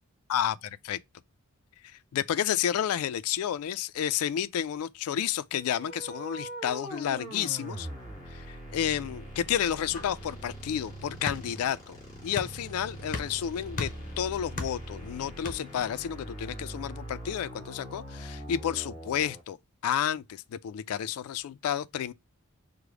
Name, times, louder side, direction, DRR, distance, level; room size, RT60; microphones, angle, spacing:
voice 1, 0.3-1.0 1.8-7.9 8.3-12.0 12.2-19.6 19.8-22.1, left 9 dB, 75° left, 0.3 m, -31 dB
sound 1, 5.5-19.4, right 1 dB, 20° left, 2.7 m, -42 dB
sound 2, 9.2-15.9, left 3 dB, 35° left, 0.8 m, -41 dB
4.8 x 2.1 x 4.7 m
head